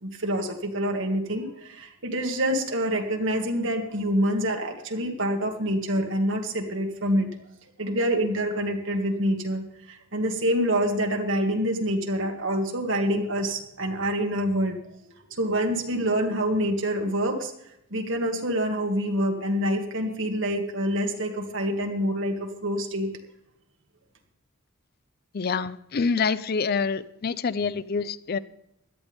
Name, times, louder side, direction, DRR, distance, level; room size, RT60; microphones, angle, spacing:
voice 1, 0.0-7.3 7.8-14.8 15.3-17.5 17.9-23.1, equal, 60° right, 3 dB, 2.0 m, -26 dB
voice 2, 25.3-28.4, left 5 dB, 45° left, 16 dB, 0.5 m, -26 dB
17.0 x 12.5 x 3.5 m, 0.81 s
head